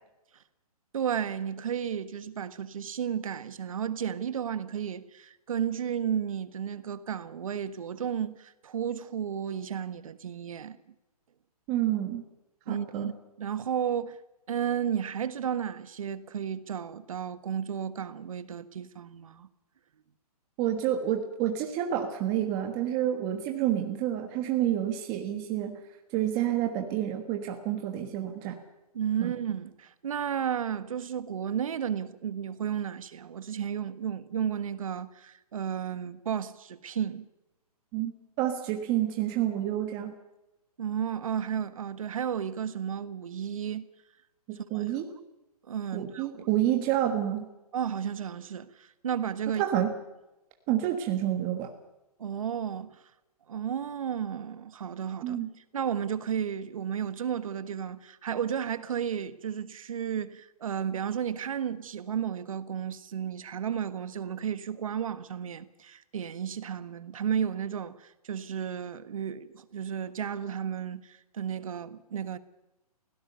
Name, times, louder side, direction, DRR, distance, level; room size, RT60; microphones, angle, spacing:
voice 1, 0.9-10.8 12.7-13.1 13.4-14.2 14.5-19.5 28.9-37.3 40.8-43.9 44.7-44.8 45.7-46.5 47.7-49.6 52.2-53.0 53.5-55.4 55.7-72.4, right 8 dB, 60° right, 1.5 m, -33 dB
voice 2, 11.7-12.2 12.7-13.1 20.6-25.8 26.1-28.6 29.2-29.3 37.9-38.1 38.4-40.1 44.5-45.1 45.9-47.5 49.6-49.9 50.7-51.7 55.2-55.5, right 11 dB, 20° right, 1.4 m, -29 dB
22.5 x 17.0 x 6.9 m
hypercardioid pair, 165°, 20 cm